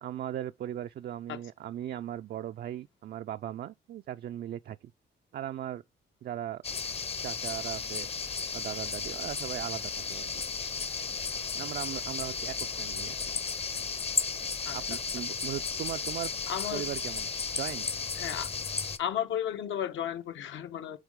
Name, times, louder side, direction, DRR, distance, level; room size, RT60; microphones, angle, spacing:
voice 1, 0.0-4.9 5.3-5.8 6.2-6.6 7.2-8.1 8.5-10.3 11.5-13.2 14.7-16.3 16.7-17.3 17.5-17.9, right 11 dB, 55° right, 0.4 m, -38 dB
sound 1, 6.6-19.0, left 5 dB, 30° left, 0.7 m, -34 dB
voice 2, 16.5-16.8 18.2-18.5 19.0-21.0, left 10 dB, 75° left, 1.1 m, -33 dB
8.0 x 4.1 x 3.6 m
cardioid pair, 90°, 20 cm